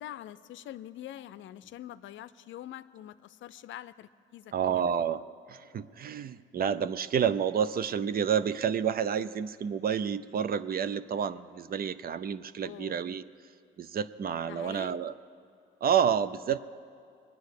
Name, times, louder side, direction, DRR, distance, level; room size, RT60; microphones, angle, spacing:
voice 1, 0.0-4.8 12.6-13.0 14.5-15.0, left 12 dB, 75° left, 15 dB, 0.5 m, -45 dB
voice 2, 4.5-5.2 5.5-13.2 13.8-15.1 15.8-16.6, right 8 dB, 50° right, 15 dB, 0.5 m, -29 dB
22.5 x 9.5 x 6.6 m, 2.3 s
cardioid pair, 90°, 20 cm